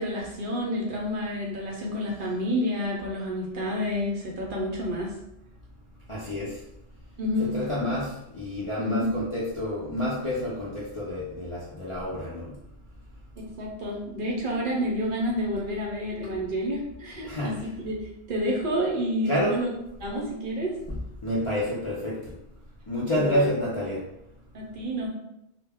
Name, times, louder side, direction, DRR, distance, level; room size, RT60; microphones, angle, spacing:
voice 1, 0.0-5.1 7.2-7.5 8.8-9.1 13.4-19.7 20.0-20.8 23.1-23.5 24.5-25.1, equal, 60° right, -2 dB, 0.7 m, -29 dB
voice 2, 6.1-6.5 7.4-12.5 17.2-17.6 19.3-19.6 21.2-22.2 22.9-24.0, equal, 45° left, -7 dB, 0.4 m, -28 dB
2.1 x 2.1 x 3.4 m, 0.83 s
omnidirectional pair, 1.1 m